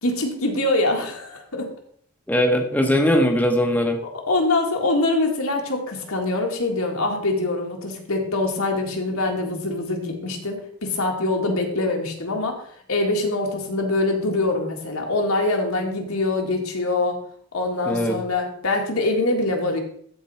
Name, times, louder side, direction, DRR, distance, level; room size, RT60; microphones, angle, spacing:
voice 1, 0.0-1.7 4.0-12.6 12.9-17.2 17.5-19.8, left 2 dB, 80° left, 1 dB, 1.9 m, -24 dB
voice 2, 2.3-4.0 17.9-18.2, equal, 5° left, 3 dB, 0.8 m, -20 dB
13.5 x 4.5 x 4.3 m, 0.63 s
head